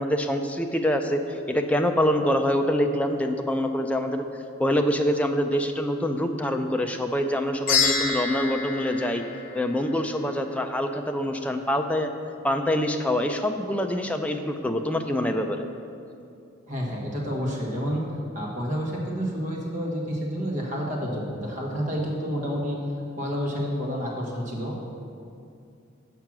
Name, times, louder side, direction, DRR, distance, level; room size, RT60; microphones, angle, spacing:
voice 1, 0.0-4.2 4.6-9.2 9.5-12.1 12.4-15.6, left 1 dB, 5° left, 5 dB, 0.4 m, -25 dB
sound 1, 7.7-10.1, left 4 dB, 45° left, 1.4 m, -27 dB
voice 2, 16.7-18.0 18.3-22.8 23.2-24.8, equal, 40° right, -3 dB, 1.5 m, -29 dB
7.6 x 5.6 x 6.0 m, 2.6 s
head